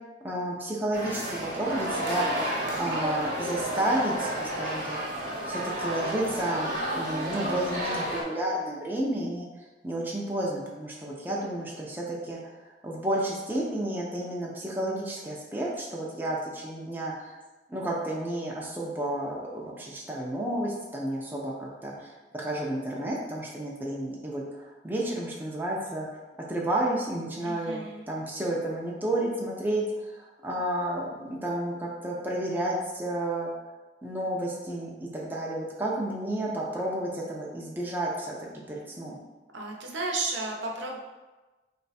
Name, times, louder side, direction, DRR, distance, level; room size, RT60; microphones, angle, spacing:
voice 1, 0.2-2.3 2.7-5.0 5.5-9.5 9.8-17.4 17.7-26.1 26.5-27.8 28.1-33.5 34.0-39.2, right 1 dB, 10° right, -4 dB, 0.5 m, -31 dB
sound 1, 0.9-8.2, right 1 dB, 45° right, 1.0 m, -31 dB
voice 2, 27.4-28.0 39.5-41.0, right 2 dB, 85° right, 0 dB, 0.8 m, -33 dB
3.4 x 3.1 x 4.1 m, 1.2 s
head